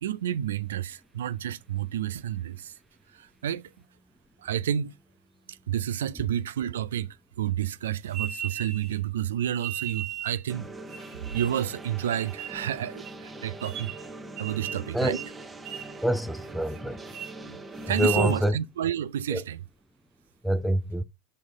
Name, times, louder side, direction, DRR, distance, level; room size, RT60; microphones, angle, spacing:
voice 1, 0.0-2.7 3.1-3.7 4.4-4.9 5.5-13.9 14.4-15.2 17.5-17.6 17.9-19.6, right 10 dB, 75° right, 0.4 m, -30 dB
sound 1, 8.1-8.9 9.6-10.4 10.9-11.6 12.1-12.6 13.0-13.1 13.6-14.1 14.4-14.9 15.1-15.3 15.6-16.0 16.4-16.8 17.1-17.3 17.8-18.4, right 10 dB, 50° right, 1.5 m, -36 dB
sound 2, 10.5-18.5, right 2 dB, 15° right, 1.1 m, -42 dB
voice 2, 16.0-17.0 18.0-18.5 19.3-19.4 20.4-21.0, equal, ahead, 0.6 m, -26 dB
6.3 x 5.5 x 3.5 m
hypercardioid pair, 85°, 0 cm